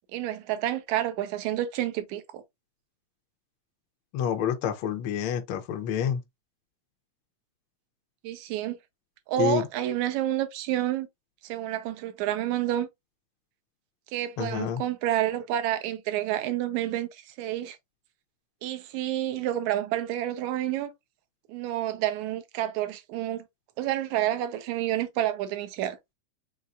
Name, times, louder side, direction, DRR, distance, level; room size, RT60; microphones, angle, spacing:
voice 1, 0.1-2.4 8.2-8.8 9.3-11.1 11.4-12.9 14.1-17.8 18.6-20.9 21.5-23.4 23.8-26.0, right 13 dB, 80° right, 2.0 m, -29 dB
voice 2, 4.1-6.2 9.4-9.7 14.4-14.8, left 9 dB, 85° left, 1.1 m, -28 dB
5.5 x 3.1 x 2.4 m
omnidirectional pair, 3.5 m